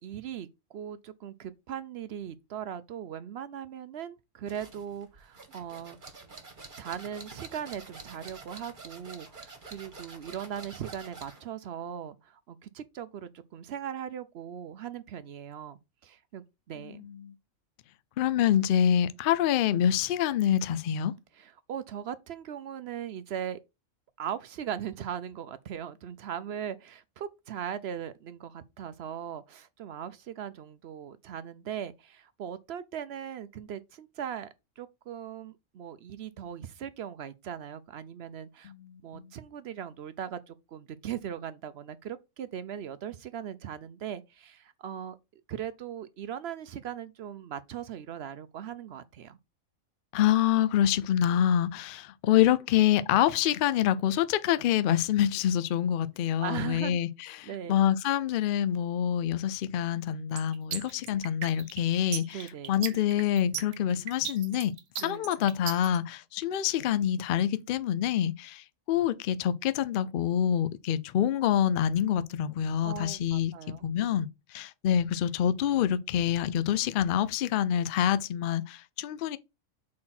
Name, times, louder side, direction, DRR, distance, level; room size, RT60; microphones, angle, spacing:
voice 1, 0.0-6.0 6.8-17.0 21.3-23.6 24.2-34.5 34.8-38.7 39.0-45.2 45.5-49.4 56.4-57.0 57.4-57.8 62.3-62.7 65.0-65.3 72.8-73.8, right 9 dB, 65° right, 0.7 m, -39 dB
sound 1, 4.5-11.5, right 4 dB, 40° right, 1.5 m, -48 dB
voice 2, 18.2-21.1 38.8-39.3 50.1-57.1 57.4-62.4 62.7-64.7 65.0-68.6 68.9-73.5 73.8-74.3 74.5-79.4, left 10 dB, 65° left, 0.5 m, -26 dB
sound 2, 60.4-66.0, right 8 dB, 80° right, 1.2 m, -36 dB
4.3 x 4.3 x 5.7 m
omnidirectional pair, 1.3 m